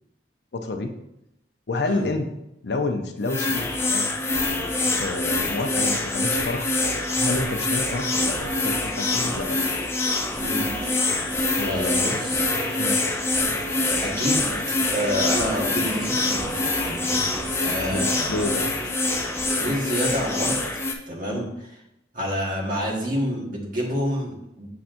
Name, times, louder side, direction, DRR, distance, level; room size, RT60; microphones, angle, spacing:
voice 1, 0.5-0.9 1.7-2.3 2.6-4.2 5.0-6.7 7.2-9.6 11.6-12.2 12.8-13.0 17.9-18.0 18.3-18.7 21.3-21.5, left 2 dB, 70° left, 5 dB, 0.6 m, -29 dB
sound 1, 3.3-20.9, left 2 dB, 15° left, 0.5 m, -25 dB
sound 2, 4.3-20.3, right 1 dB, 20° right, 1.8 m, -38 dB
sound 3, 10.3-16.4, right 2 dB, 65° right, 0.6 m, -44 dB
voice 2, 11.7-12.5 13.6-14.5 14.9-18.5 19.4-21.8 22.1-24.7, equal, 50° right, -2 dB, 1.5 m, -29 dB
6.9 x 5.8 x 2.6 m, 0.85 s
head